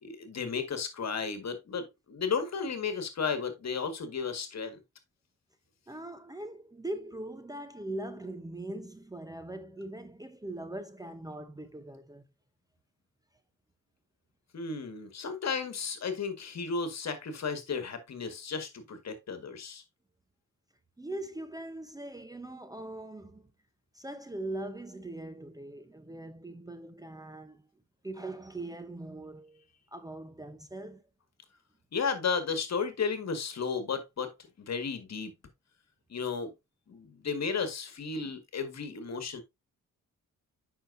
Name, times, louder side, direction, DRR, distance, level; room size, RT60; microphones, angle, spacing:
voice 1, 0.0-4.8 14.5-19.8 31.9-34.3 34.7-35.3 36.1-36.5 36.9-39.4, left 5 dB, 50° left, 1.7 m, -34 dB
voice 2, 5.9-12.2 21.0-23.5 23.9-27.6 28.0-29.6 29.9-31.0, right 1 dB, 10° right, 0.8 m, -41 dB
8.8 x 5.8 x 2.6 m
cardioid pair, 90°, 33 cm